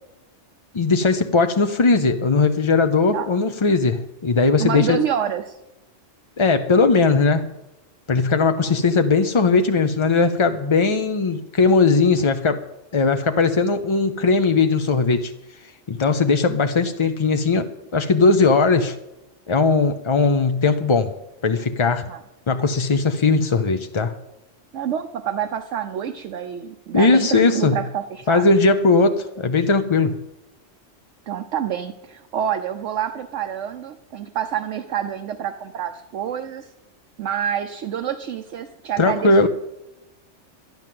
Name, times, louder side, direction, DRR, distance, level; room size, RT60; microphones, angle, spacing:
voice 1, 0.7-5.0 6.4-7.5 8.1-12.6 12.9-15.3 15.9-19.0 19.5-21.1 21.4-22.1 22.5-24.2 26.9-27.8 28.3-30.2 39.0-39.5, left 4 dB, 35° left, 7 dB, 0.5 m, -18 dB
voice 2, 4.6-5.6 8.6-8.7 22.1-22.2 24.7-28.5 31.3-36.7 37.2-39.5, right 9 dB, 75° right, 6 dB, 1.1 m, -27 dB
12.0 x 10.5 x 7.6 m, 0.97 s
omnidirectional pair, 1.3 m